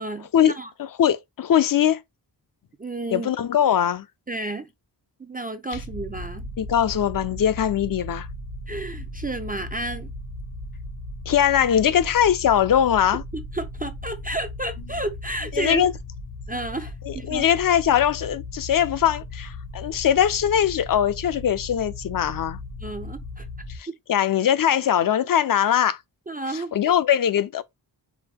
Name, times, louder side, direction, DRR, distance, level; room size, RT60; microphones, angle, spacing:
voice 1, 0.0-0.7 2.8-3.3 4.3-4.7 5.2-6.5 8.7-10.1 13.3-15.9 16.5-17.4 22.8-23.5 23.9-24.0 26.3-26.7, right 2 dB, 20° right, 0.4 m, -31 dB
voice 2, 0.8-2.0 3.1-4.1 6.6-8.3 11.3-13.2 15.5-15.9 17.0-22.6 23.7-26.0 26.5-27.6, left 9 dB, 55° left, 0.5 m, -21 dB
sound 1, 5.7-23.8, left 2 dB, 80° left, 1.0 m, -37 dB
4.9 x 2.1 x 3.4 m
wide cardioid pair, 105°, 42 cm